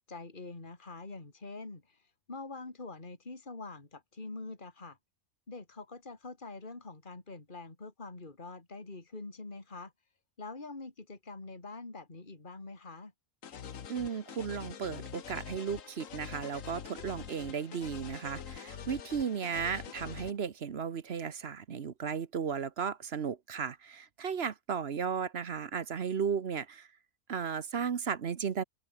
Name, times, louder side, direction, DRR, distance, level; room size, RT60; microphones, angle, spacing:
voice 1, 0.0-2.0 2.3-5.0 5.5-9.9 10.4-13.1, left 3 dB, 35° left, 3.1 m, -45 dB
sound 1, 13.4-20.3, left 8 dB, 70° left, 1.6 m, -45 dB
voice 2, 13.9-26.9 27.3-28.6, right 6 dB, 50° right, 1.1 m, -35 dB
open air
omnidirectional pair, 1.5 m